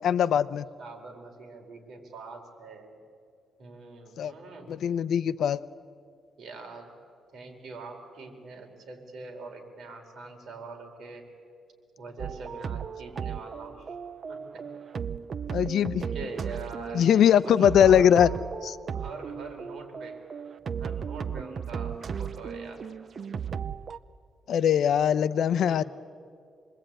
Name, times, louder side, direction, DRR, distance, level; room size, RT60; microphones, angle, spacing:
voice 1, 0.0-0.7 4.2-4.3 4.7-5.6 15.5-16.0 16.9-18.3 18.6-18.8 24.5-25.8, left 9 dB, 70° left, 15 dB, 0.7 m, -21 dB
voice 2, 0.8-3.0 3.6-4.8 6.4-6.9 7.3-11.2 12.0-14.0 14.3-14.7 16.0-18.2 18.9-20.2 20.8-22.8 25.7-25.9, right 3 dB, 60° right, 2 dB, 4.6 m, -43 dB
sound 1, 12.2-24.0, right 7 dB, 45° right, 0.6 m, -36 dB
27.5 x 21.0 x 9.1 m, 2.3 s
cardioid pair, 120°, 0 cm